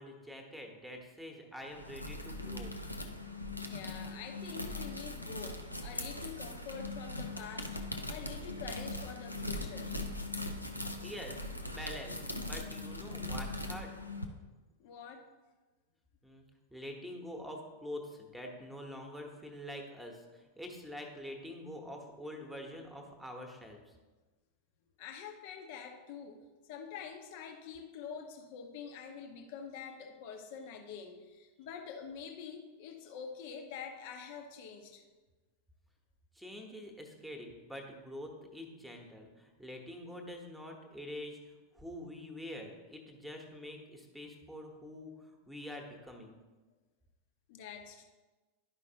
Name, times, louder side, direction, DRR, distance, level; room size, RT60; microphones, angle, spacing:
voice 1, 0.0-2.7 11.0-13.9 16.2-16.4 16.7-23.9 36.3-46.4, left 1 dB, ahead, 2 dB, 1.2 m, -46 dB
sound 1, 1.6-14.2, left 1 dB, 90° left, 0.6 m, -40 dB
voice 2, 3.7-7.8 8.1-10.0 14.8-15.3 25.0-35.0 47.5-48.0, left 6 dB, 50° left, 4 dB, 0.9 m, -46 dB
11.5 x 5.1 x 2.9 m, 1.2 s
figure-of-eight pair, 90°, 0 cm